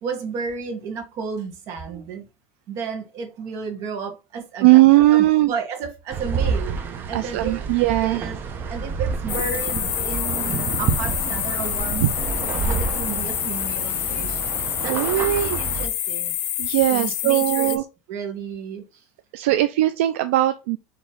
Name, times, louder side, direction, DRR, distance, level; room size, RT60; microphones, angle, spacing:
voice 1, 0.0-2.3 2.7-4.8 5.1-6.8 7.1-7.6 8.0-8.4 8.7-12.3 12.6-14.4 14.8-16.4 16.9-17.8 18.1-18.8, right 5 dB, 50° right, 1.3 m, -32 dB
voice 2, 4.6-5.5 7.1-8.2 12.0-12.1 14.9-15.6 16.6-17.8 19.3-20.8, right 16 dB, 80° right, 0.4 m, -18 dB
sound 1, 6.1-15.9, right 5 dB, 35° right, 0.7 m, -28 dB
sound 2, 9.3-17.8, left 12 dB, 90° left, 0.5 m, -27 dB
4.3 x 3.0 x 3.6 m
supercardioid pair, 135°, 6 cm